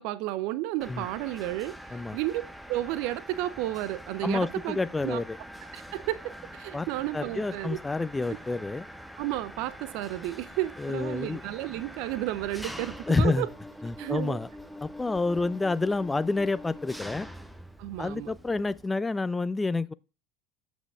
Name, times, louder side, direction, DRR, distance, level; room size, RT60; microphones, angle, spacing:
voice 1, 0.0-1.8 2.1-2.4 2.7-4.8 5.0-5.2 5.7-7.8 9.2-13.5 14.0-14.4 17.8-18.3, right 15 dB, 60° right, 0.5 m, -32 dB
Mechanisms, 0.8-18.8, equal, 5° right, 0.9 m, -45 dB
voice 2, 4.2-5.4 6.7-6.9 7.1-8.9 10.8-11.4 13.1-13.5 13.8-14.5 14.8-17.3 18.0-19.9, left 3 dB, 15° left, 0.4 m, -28 dB
15.0 x 6.2 x 2.3 m
hypercardioid pair, 70°, 0 cm